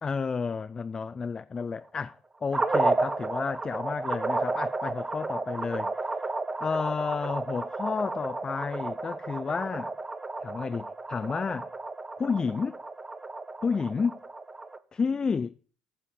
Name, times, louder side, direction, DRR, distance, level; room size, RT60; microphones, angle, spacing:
voice 1, 0.0-2.2 2.4-5.9 6.2-6.3 6.6-9.9 10.4-11.7 12.2-12.8 13.6-14.2 14.9-15.5, left 5 dB, 30° left, 0.4 m, -31 dB
sound 1, 2.5-14.8, right 3 dB, 20° right, 0.9 m, -32 dB
9.7 x 4.4 x 7.0 m
supercardioid pair, 70°, 2 cm